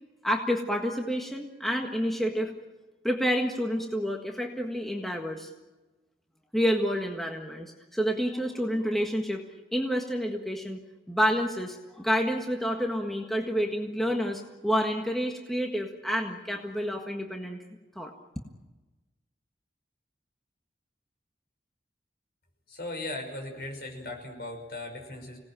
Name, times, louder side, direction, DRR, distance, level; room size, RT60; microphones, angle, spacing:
voice 1, 0.2-2.5 3.0-5.5 6.5-9.4 9.7-10.8 11.1-17.6 17.9-18.1, equal, ahead, 1 dB, 1.6 m, -29 dB
voice 2, 22.7-25.4, left 2 dB, 60° left, 2 dB, 5.9 m, -38 dB
26.0 x 18.5 x 9.1 m, 1.2 s
head